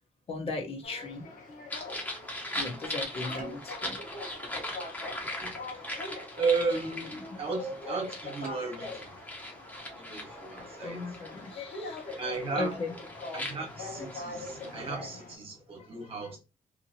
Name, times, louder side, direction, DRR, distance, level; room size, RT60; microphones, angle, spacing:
voice 1, 0.3-1.3 2.6-4.0 10.8-12.0 12.6-12.9, left 2 dB, 40° left, 0.7 m, -37 dB
sound 1, 0.8-15.3, left 2 dB, 65° left, 1.1 m, -43 dB
sound 2, 1.7-14.9, left 1 dB, 10° left, 0.8 m, -40 dB
sound 3, 3.4-3.8 8.3-8.6, right 3 dB, 80° right, 0.7 m, -48 dB
voice 2, 5.2-9.1 9.9-11.0 12.2-12.8 13.3-16.4, right 4 dB, 40° right, 1.0 m, -35 dB
2.8 x 2.6 x 2.7 m
wide cardioid pair, 150°, 14 cm